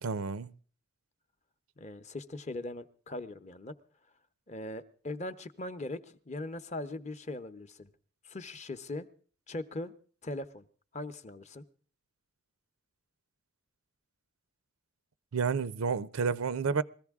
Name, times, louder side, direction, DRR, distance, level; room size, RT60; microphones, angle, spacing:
voice 1, 0.0-0.5 15.3-16.8, right 5 dB, 85° right, 0.6 m, -30 dB
voice 2, 1.8-3.7 4.5-6.0 6.3-7.9 8.2-9.1 9.5-9.9 10.2-10.6 10.9-11.6, left 2 dB, 35° left, 0.7 m, -40 dB
21.0 x 14.5 x 3.6 m
head